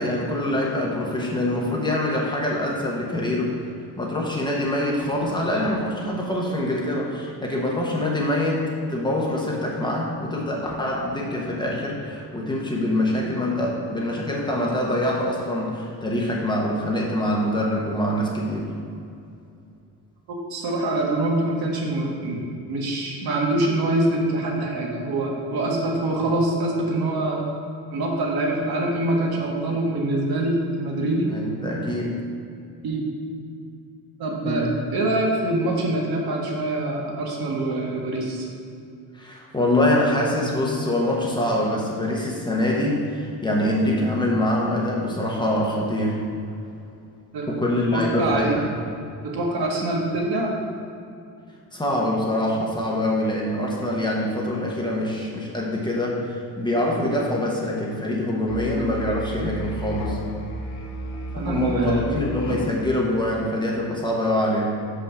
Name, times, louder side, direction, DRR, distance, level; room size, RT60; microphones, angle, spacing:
voice 1, 0.0-3.5 4.0-8.6 8.9-18.7 31.3-32.1 34.4-34.7 39.1-46.2 47.5-48.7 51.7-60.2 61.4-64.7, left 1 dB, 10° left, -3 dB, 1.0 m, -24 dB
voice 2, 20.3-22.4 22.7-27.5 27.9-31.3 32.8-33.1 34.2-38.5 47.3-47.5 47.9-48.6 49.2-50.5 61.3-62.0, right 2 dB, 70° right, -1 dB, 1.6 m, -24 dB
Musical instrument, 58.5-63.0, equal, 75° left, 1.9 m, -33 dB
6.1 x 5.7 x 6.5 m, 2.5 s
cardioid pair, 180°, 39 cm